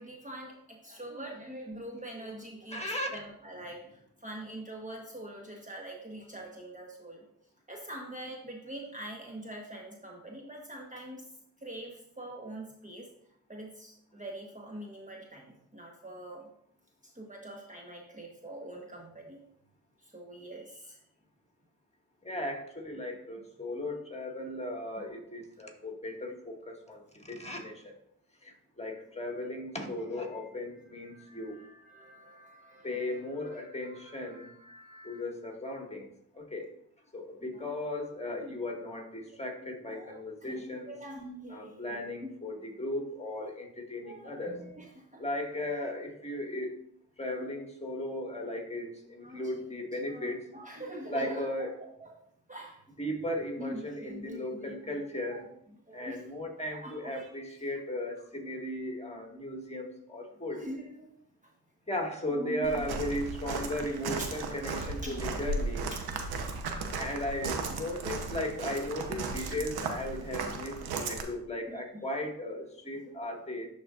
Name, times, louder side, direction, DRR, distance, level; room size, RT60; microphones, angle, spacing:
voice 1, 0.0-2.8 3.1-7.3 7.7-11.2 11.6-13.1 13.5-16.5 17.0-19.4 20.0-21.0 31.1-33.1 33.4-35.2 37.5-37.7 38.4-38.9 39.8-42.3 44.0-45.2 47.4-47.5 49.2-49.7 50.1-51.7 52.0-52.1 52.5-52.8 53.6-55.0 55.3-55.4 55.9-56.2 56.7-57.3 60.5-61.1 62.3-62.9 63.6-63.9 64.2-64.3 65.0-65.2 66.3-66.8 70.2-70.5 71.7-71.8 73.1-73.2, right 1 dB, 20° right, -1 dB, 1.2 m, -44 dB
voice 2, 2.7-3.1 22.2-27.9 28.4-31.6 32.8-34.5 35.0-36.1 36.3-36.7 37.1-40.9 41.5-44.6 45.2-46.8 47.2-50.5 51.1-51.8 53.0-55.5 55.9-60.6 61.9-65.9 67.0-73.7, left 1 dB, 15° left, 1 dB, 1.8 m, -36 dB
Walk footsteps, 62.6-71.2, right 3 dB, 85° right, 0.9 m, -36 dB
11.5 x 4.1 x 2.5 m, 0.71 s
supercardioid pair, 45°, 37 cm